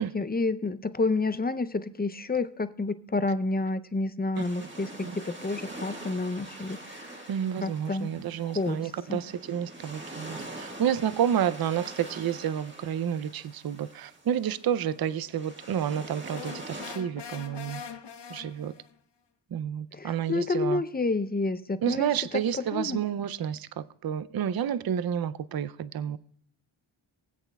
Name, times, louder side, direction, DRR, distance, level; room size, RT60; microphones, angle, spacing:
voice 1, 0.1-7.2 7.6-8.1 8.4-9.2 19.9-22.4 22.7-23.0, left 3 dB, 20° left, 0.4 m, -29 dB
sound 1, 4.4-17.0, right 2 dB, 25° right, 1.5 m, -44 dB
voice 2, 7.3-17.8 18.3-18.7 19.5-20.8 21.8-26.2, right 9 dB, 50° right, 0.5 m, -30 dB
sound 2, 16.3-18.9, left 7 dB, 60° left, 0.6 m, -42 dB
23.5 x 8.1 x 2.2 m
wide cardioid pair, 85°, 48 cm